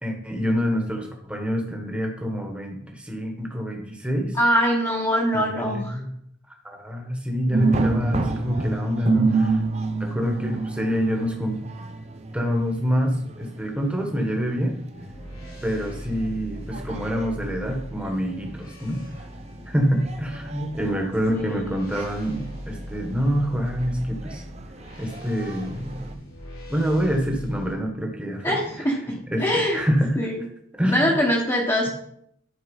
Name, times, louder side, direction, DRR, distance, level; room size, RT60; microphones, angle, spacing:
voice 1, 0.0-4.4 5.3-6.1 6.6-9.6 10.0-11.6 12.3-14.7 15.6-19.0 19.7-24.4 25.0-26.2 26.7-28.6 29.3-29.4 29.7-30.3 30.7-31.1, equal, 5° right, 1 dB, 1.5 m, -26 dB
voice 2, 4.3-6.0 21.3-21.7 28.4-29.8 30.2-30.4 30.9-31.9, equal, 15° left, -6 dB, 1.4 m, -23 dB
sound 1, 7.5-26.1, right 3 dB, 30° right, 0.7 m, -30 dB
sound 2, 14.9-27.7, equal, 80° left, 3.6 m, -40 dB
11.5 x 4.6 x 5.5 m, 0.71 s
head